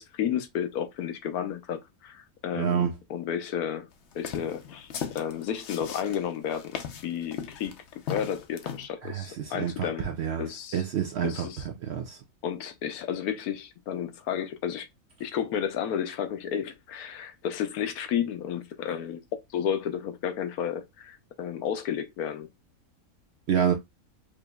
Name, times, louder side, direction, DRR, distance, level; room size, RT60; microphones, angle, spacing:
voice 1, 0.0-3.9 4.1-4.9 5.1-7.8 8.1-10.1 10.4-10.9 11.2-11.7 12.4-14.9 15.2-19.2 19.5-22.5, left 9 dB, 80° left, 1.1 m, -32 dB
voice 2, 2.6-2.9 9.0-10.5 10.7-11.3 11.9-12.2 23.5-23.7, right 8 dB, 65° right, 0.7 m, -27 dB
sound 1, 4.1-8.9, left 8 dB, 60° left, 0.8 m, -37 dB
4.9 x 2.7 x 2.2 m
omnidirectional pair, 1.6 m